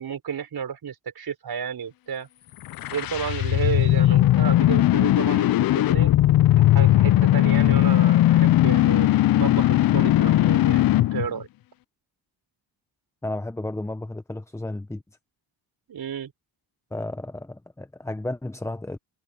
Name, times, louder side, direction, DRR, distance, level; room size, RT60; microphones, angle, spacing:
voice 1, 0.0-2.3 2.9-6.1 6.7-11.5 15.9-16.3, right 7 dB, 50° right, 4.9 m, -32 dB
sound 1, 2.6-11.3, left 14 dB, 50° left, 0.5 m, -18 dB
voice 2, 13.2-15.0 16.9-19.0, left 2 dB, 5° left, 0.8 m, -33 dB
cardioid pair, 90°, 46 cm